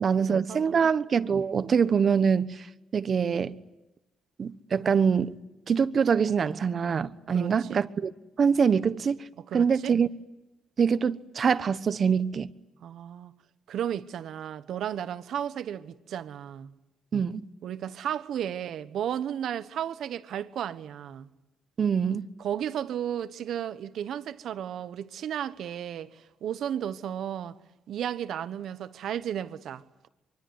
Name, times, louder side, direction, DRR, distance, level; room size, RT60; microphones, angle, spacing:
voice 1, 0.0-2.7 2.9-3.6 4.4-5.4 5.7-8.1 8.4-9.2 9.5-10.1 10.8-12.5 17.1-17.4 21.8-22.3, right 6 dB, 45° right, 1.1 m, -24 dB
voice 2, 7.3-7.9 9.5-9.9 12.8-13.3 13.7-16.7 17.6-21.3 22.4-27.5 27.9-29.8, right 9 dB, 70° right, 1.2 m, -34 dB
24.0 x 23.5 x 9.6 m
cardioid pair, 90°, 0 cm